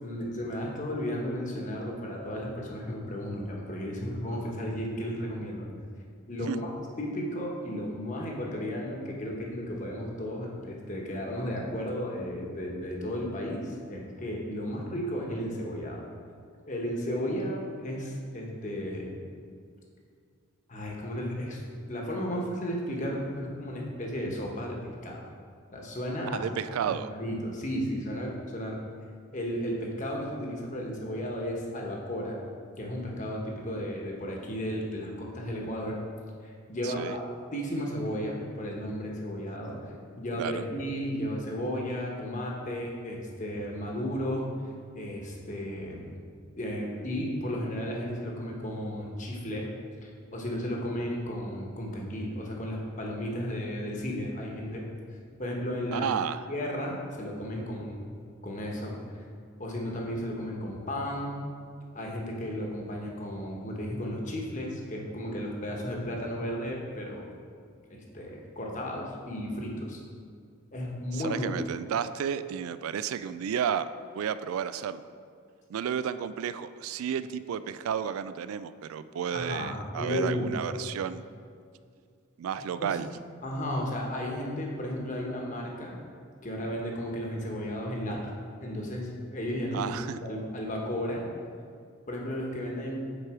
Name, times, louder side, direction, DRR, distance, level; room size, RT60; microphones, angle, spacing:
voice 1, 0.0-5.7 6.3-16.0 16.7-19.1 20.7-21.6 21.9-25.2 25.7-26.4 26.8-28.8 29.3-32.4 32.8-36.0 36.4-37.2 37.5-39.8 40.2-44.5 44.9-46.0 46.6-49.7 50.0-54.8 55.4-56.1 56.5-58.0 58.4-58.9 59.6-61.4 61.9-67.3 67.9-70.0 70.7-71.4 79.3-80.7 82.8-82.9 83.4-86.0 86.4-90.0 90.2-91.2 92.1-93.0, equal, 35° left, -1 dB, 1.1 m, -34 dB
voice 2, 26.3-27.1 36.8-37.2 40.4-40.6 55.9-56.5 71.1-73.9 74.1-75.0 75.7-81.2 82.4-83.1 89.7-90.2, right 8 dB, 85° right, 13 dB, 0.3 m, -32 dB
7.4 x 4.7 x 4.8 m, 2.2 s
head